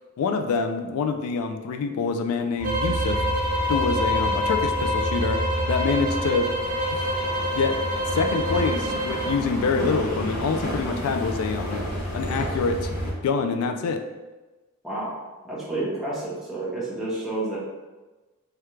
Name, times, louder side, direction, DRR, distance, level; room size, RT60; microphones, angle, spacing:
voice 1, 0.2-3.2 3.7-5.4 5.7-6.5 6.9-7.1 7.5-7.8 8.1-11.9 12.1-12.9 13.2-14.0, left 4 dB, 75° left, 7 dB, 0.3 m, -26 dB
sound 1, 2.6-13.1, left 1 dB, 40° left, 1.1 m, -28 dB
sound 2, 2.6-9.4, right 2 dB, 40° right, 0.4 m, -29 dB
voice 2, 14.8-15.1 15.4-17.6, right 2 dB, ahead, -8 dB, 0.9 m, -30 dB
3.3 x 2.3 x 3.1 m, 1.2 s
head